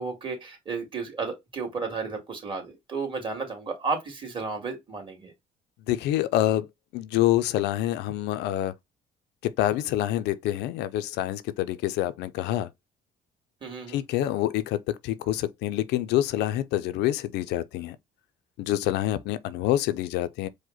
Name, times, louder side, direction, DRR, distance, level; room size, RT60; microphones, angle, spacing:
voice 1, 0.0-5.3 13.6-14.0, right 4 dB, 30° right, 2.1 m, -33 dB
voice 2, 5.9-6.7 6.9-8.7 9.4-12.7 13.9-18.0 18.6-20.5, left 13 dB, 85° left, 0.5 m, -26 dB
4.9 x 2.1 x 3.9 m
cardioid pair, 110°, 17 cm